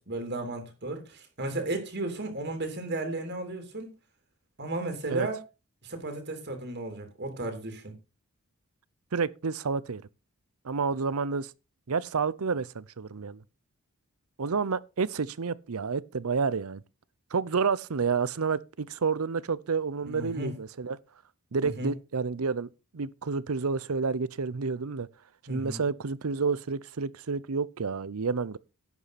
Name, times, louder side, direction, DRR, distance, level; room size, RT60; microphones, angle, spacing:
voice 1, 0.0-3.9 4.6-5.4 5.8-7.9 20.0-20.5 21.6-21.9 25.5-25.8, right 2 dB, 50° right, 3.1 m, -34 dB
voice 2, 9.1-10.0 10.6-11.5 11.9-13.4 14.4-16.8 17.3-21.0 21.5-25.1 25.5-28.6, right 5 dB, 75° right, 0.7 m, -29 dB
11.0 x 8.4 x 4.2 m
head